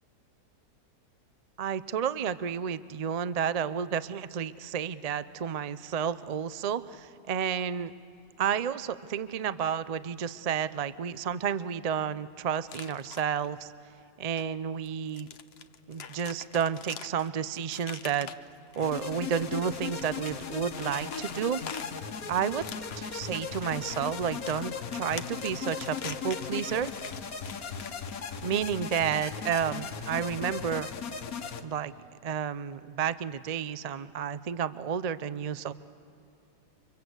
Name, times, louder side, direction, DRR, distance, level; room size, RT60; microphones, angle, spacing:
voice 1, 1.6-7.9 8.4-13.7 14.2-15.3 15.9-18.3 18.7-21.6 22.3-22.6 23.0-26.9 28.4-30.9 31.6-31.9 32.2-35.7, right 8 dB, 80° right, 15 dB, 0.3 m, -31 dB
sound 1, 12.7-13.5 14.4-14.5 14.9-19.4 19.8-28.3, left 7 dB, 50° left, 0.9 m, -45 dB
sound 2, 18.8-31.6, left 6 dB, 65° left, 1.6 m, -37 dB
29.5 x 25.0 x 8.1 m, 2.7 s
omnidirectional pair, 1.7 m